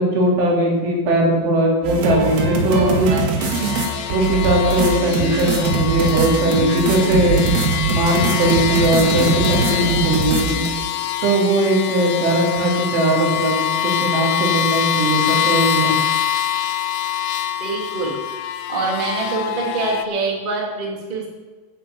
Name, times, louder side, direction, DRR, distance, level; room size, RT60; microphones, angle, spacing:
voice 1, 0.0-3.1 4.1-7.5 7.8-10.6 11.2-13.6 13.8-16.0, right 1 dB, 80° right, -1 dB, 5.5 m, -19 dB
sound 1, 1.8-10.7, right 4 dB, 60° right, 3.4 m, -22 dB
voice 2, 2.7-3.2 17.6-21.3, right 3 dB, 15° right, -2 dB, 1.9 m, -25 dB
sound 2, 3.4-20.1, left 10 dB, 80° left, 3.2 m, -24 dB
10.5 x 10.5 x 8.3 m, 1.3 s
omnidirectional pair, 5.4 m